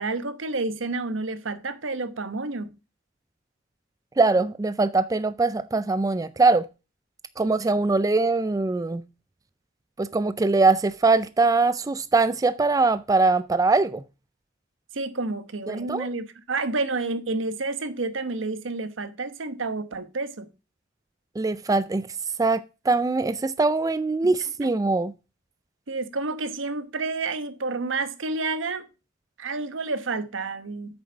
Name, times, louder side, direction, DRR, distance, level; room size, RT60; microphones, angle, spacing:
voice 1, 0.0-2.7 7.4-7.5 14.9-20.5 24.2-24.3 24.6-24.7 25.9-28.9 29.4-31.0, right 3 dB, 80° right, 1.0 m, -30 dB
voice 2, 4.2-6.7 7.4-9.0 10.0-14.0 15.7-16.1 21.4-22.1 22.4-25.1, right 3 dB, 20° right, 0.4 m, -22 dB
8.5 x 6.9 x 3.9 m
head